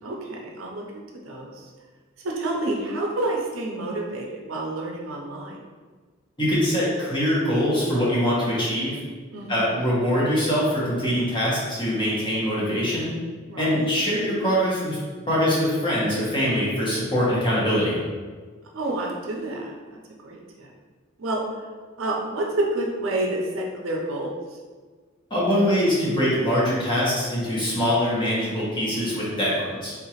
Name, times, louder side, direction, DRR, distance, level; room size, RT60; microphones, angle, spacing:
voice 1, 0.0-1.6 2.2-5.6 9.3-9.8 13.5-13.9 18.7-20.7 21.2-21.4 22.0-24.3, right 2 dB, 80° right, -1 dB, 0.6 m, -29 dB
voice 2, 6.4-9.0 9.5-13.1 13.6-15.0 15.3-18.0 25.3-29.9, equal, 25° left, -7 dB, 1.1 m, -23 dB
3.6 x 2.8 x 2.9 m, 1.5 s
head